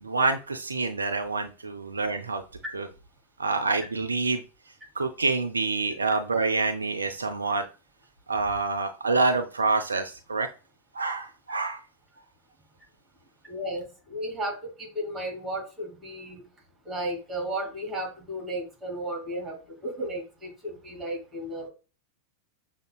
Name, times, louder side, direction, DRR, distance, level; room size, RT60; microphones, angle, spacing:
voice 1, 0.0-2.4 2.7-2.9 3.4-4.4 5.0-7.6 8.3-10.5 10.9-11.8, right 3 dB, 75° right, 6 dB, 0.4 m, -27 dB
voice 2, 13.4-16.4 16.8-21.7, right 1 dB, 15° right, 1 dB, 2.3 m, -34 dB
6.4 x 2.8 x 2.3 m, 0.33 s
figure-of-eight pair, 90°, 0 cm